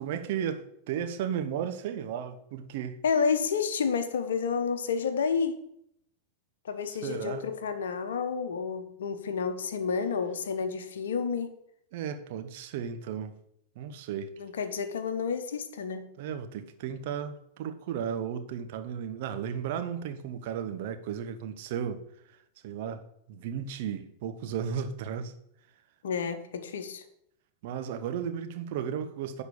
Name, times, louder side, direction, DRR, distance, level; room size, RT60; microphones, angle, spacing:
voice 1, 0.0-3.0 6.9-7.5 11.9-13.4 13.8-14.3 16.2-22.0 22.6-23.0 23.3-25.3 27.6-29.4, right 8 dB, 50° right, 1.0 m, -34 dB
voice 2, 3.0-5.6 6.6-11.5 14.4-16.1 26.0-27.0, left 6 dB, 65° left, 1.0 m, -30 dB
10.5 x 4.5 x 7.0 m
figure-of-eight pair, 90°, 0 cm